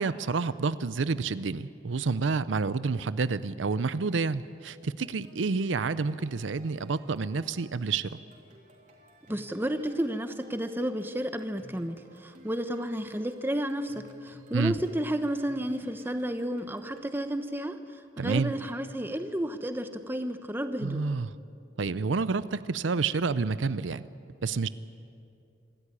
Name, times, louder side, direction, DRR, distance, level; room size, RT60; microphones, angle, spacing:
voice 1, 0.0-8.2 14.5-14.7 18.2-18.5 20.8-21.3 21.8-24.1 24.4-24.7, right 4 dB, 85° right, 15 dB, 0.6 m, -29 dB
sound 1, 5.0-17.3, right 1 dB, 40° right, 3.7 m, -56 dB
voice 2, 9.3-21.0, equal, 10° right, 8 dB, 1.0 m, -32 dB
27.0 x 13.5 x 9.8 m, 2.5 s
head